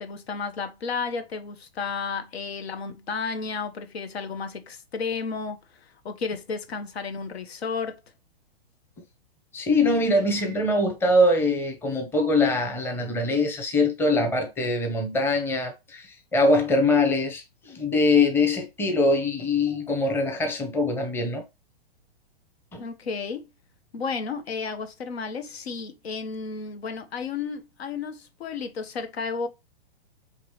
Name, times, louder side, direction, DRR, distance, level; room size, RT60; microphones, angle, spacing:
voice 1, 0.0-8.0 22.8-23.5 23.9-29.5, left 5 dB, 85° left, 1.0 m, -32 dB
voice 2, 9.5-21.4 22.7-22.8, left 2 dB, 5° left, 0.7 m, -23 dB
4.7 x 3.0 x 3.1 m
hypercardioid pair, 135°, 31 cm